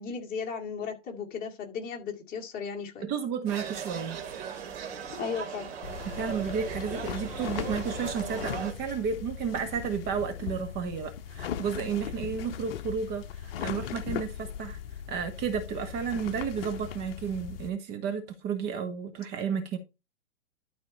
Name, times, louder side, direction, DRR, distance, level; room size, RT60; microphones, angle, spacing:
voice 1, 0.0-3.1 5.1-5.7, left 6 dB, 25° left, 2.2 m, -35 dB
voice 2, 3.0-4.2 6.1-14.8 15.1-19.8, right 7 dB, 25° right, 1.4 m, -32 dB
sound 1, 3.5-8.7, right 7 dB, 55° right, 2.4 m, -38 dB
sound 2, 5.8-17.7, left 9 dB, 50° left, 0.9 m, -38 dB
12.0 x 4.3 x 4.3 m
hypercardioid pair, 130°, 37 cm